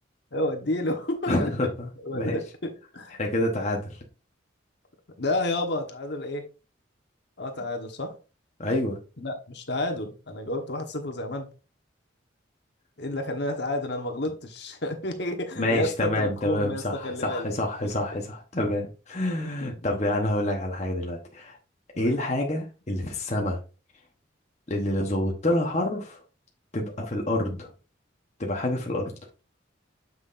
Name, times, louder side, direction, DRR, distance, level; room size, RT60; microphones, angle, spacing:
voice 1, 0.3-1.7 2.0-3.1 5.2-6.4 7.4-8.1 9.2-11.5 13.0-17.5 18.1-18.2 19.4-19.7 21.9-22.2, left 1 dB, 60° left, 1.3 m, -31 dB
voice 2, 1.3-2.4 3.2-4.0 8.6-9.0 15.6-21.6 22.0-23.6 24.7-26.2 26.7-27.7 28.4-29.1, left 1 dB, 35° left, 1.1 m, -27 dB
7.5 x 6.2 x 2.6 m
head